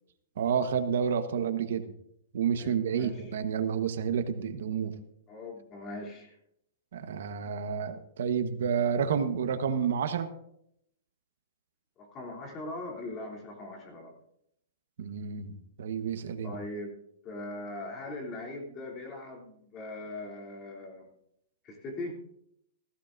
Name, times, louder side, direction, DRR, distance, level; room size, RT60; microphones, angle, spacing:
voice 1, 0.4-1.9 2.3-4.9 6.9-10.3 15.0-16.5, right 7 dB, 70° right, 9 dB, 1.2 m, -30 dB
voice 2, 2.6-3.3 5.3-6.4 12.0-14.1 16.4-21.1 21.6-22.2, left 2 dB, 25° left, -1 dB, 3.1 m, -40 dB
17.0 x 16.0 x 2.6 m, 0.74 s
hypercardioid pair, 165°, 0 cm